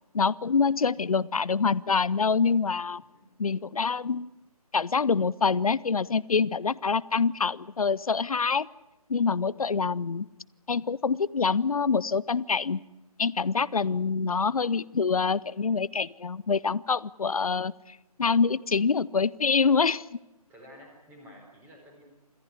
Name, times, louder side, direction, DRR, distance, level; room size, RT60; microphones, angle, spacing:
voice 1, 0.1-3.0 3.4-4.3 4.7-8.7 9.1-10.3 10.7-12.8 13.2-20.0, left 5 dB, 65° left, 21 dB, 0.7 m, -26 dB
voice 2, 3.0-3.3 15.7-15.8 18.7-18.9 20.5-22.0, equal, 10° right, 1 dB, 4.4 m, -52 dB
27.0 x 14.5 x 9.7 m, 1.0 s
figure-of-eight pair, 155°, 20 cm